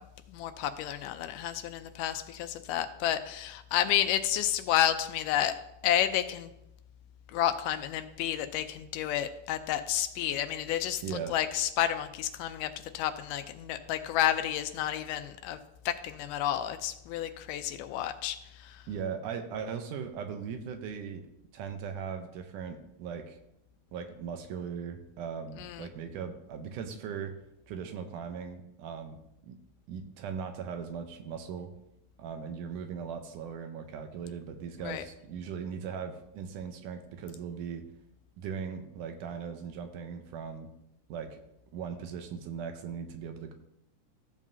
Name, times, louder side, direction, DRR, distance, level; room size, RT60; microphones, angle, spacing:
voice 1, 0.3-5.5 5.8-6.5 7.3-11.0 11.3-15.6 15.9-18.8 25.6-25.9 34.8-35.0, left 11 dB, 90° left, 9 dB, 2.2 m, -30 dB
voice 2, 11.0-11.4 18.9-21.3 21.5-23.4 23.9-27.3 27.7-29.6 29.9-31.7 32.2-37.9 38.4-40.7 41.1-41.4 41.7-43.5, right 6 dB, 80° right, 6 dB, 2.3 m, -39 dB
14.0 x 7.3 x 2.8 m, 0.83 s
omnidirectional pair, 3.7 m